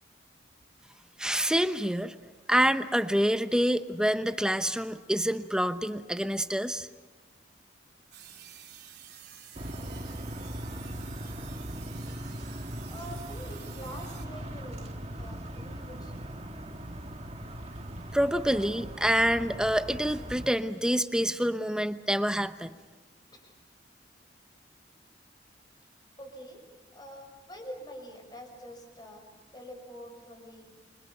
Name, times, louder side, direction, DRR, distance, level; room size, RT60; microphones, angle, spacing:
voice 1, 1.2-2.1 2.5-6.9 18.1-22.7, equal, 5° right, 10 dB, 0.8 m, -27 dB
sound 1, 8.1-14.3, right 10 dB, 60° right, 3.5 m, -50 dB
sound 2, 9.5-20.5, right 1 dB, 35° right, 1.7 m, -39 dB
voice 2, 12.9-16.3 23.3-23.5 26.2-26.7 26.9-29.3 29.5-30.7, equal, 25° left, 3 dB, 5.9 m, -46 dB
29.5 x 26.0 x 5.7 m, 1.2 s
head